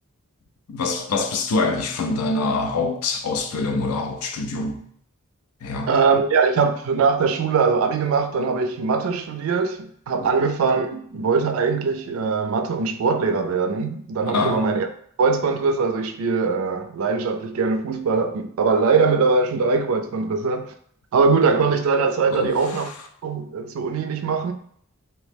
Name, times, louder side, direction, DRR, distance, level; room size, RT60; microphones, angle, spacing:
voice 1, 0.7-4.8 5.6-5.9 10.2-10.3 14.2-14.6 22.3-22.6, left 3 dB, 90° left, 0.4 m, -25 dB
voice 2, 5.9-14.9 15.2-20.7 21.1-22.9 23.2-24.5, right 4 dB, 70° right, 0.3 m, -21 dB
2.8 x 2.0 x 3.2 m
head